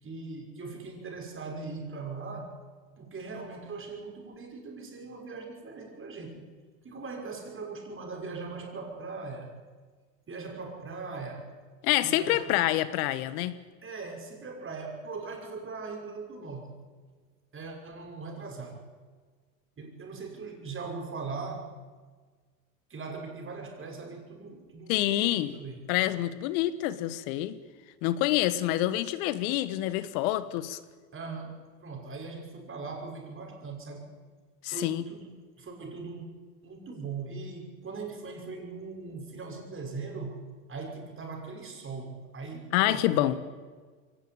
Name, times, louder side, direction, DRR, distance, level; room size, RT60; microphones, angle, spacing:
voice 1, 0.0-2.6 3.0-6.5 6.8-9.5 10.3-11.5 12.0-12.6 13.8-16.7 17.5-18.8 19.8-21.7 22.9-25.9 31.1-34.1 34.7-36.3 36.6-40.4 40.7-43.4, right 4 dB, 25° right, 1 dB, 6.2 m, -40 dB
voice 2, 11.8-13.5 24.9-25.5 25.9-27.6 28.0-30.8 34.6-35.0 42.7-43.3, left 15 dB, 60° left, 14 dB, 1.6 m, -27 dB
23.0 x 18.5 x 9.0 m, 1.5 s
hypercardioid pair, 100°, 47 cm